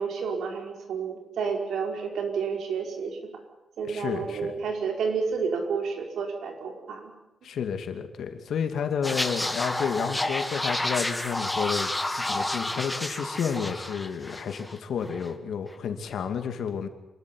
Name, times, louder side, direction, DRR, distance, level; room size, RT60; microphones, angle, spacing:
voice 1, 0.0-3.3 3.8-7.1 9.1-9.2, right 5 dB, 90° right, 3 dB, 4.9 m, -30 dB
voice 2, 3.9-4.5 7.4-11.9 12.2-16.9, left 7 dB, 70° left, 7 dB, 2.5 m, -31 dB
sound 1, 9.0-14.8 15.0-15.3, left 1 dB, 10° left, 1.6 m, -30 dB
27.5 x 13.5 x 9.8 m, 0.96 s
wide cardioid pair, 175°, 0 cm